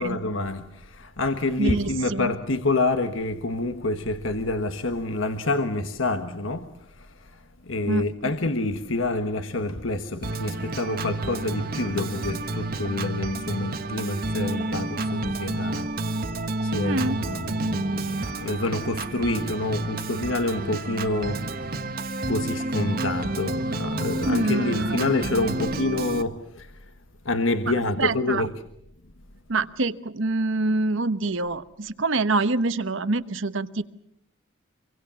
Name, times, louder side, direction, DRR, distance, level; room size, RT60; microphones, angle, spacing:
voice 1, 0.0-21.9 22.3-26.9 27.2-28.5, left 2 dB, 70° left, 1.4 m, -28 dB
voice 2, 1.6-2.3 7.9-8.3 16.8-17.2 24.2-24.9 28.0-28.5 29.5-33.8, right 3 dB, 65° right, 1.1 m, -25 dB
Organ, 10.2-26.2, right 2 dB, 45° right, 1.4 m, -30 dB
27.0 x 24.0 x 7.1 m
head